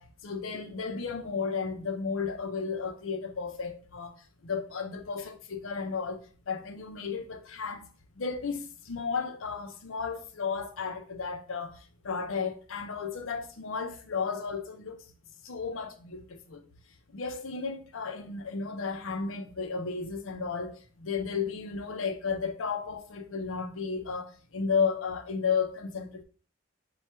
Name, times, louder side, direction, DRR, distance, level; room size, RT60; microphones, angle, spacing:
voice 1, 0.0-7.9 8.2-15.1 15.4-16.7 17.1-26.2, left 5 dB, 80° left, 0.6 m, -33 dB
4.5 x 2.3 x 4.4 m
head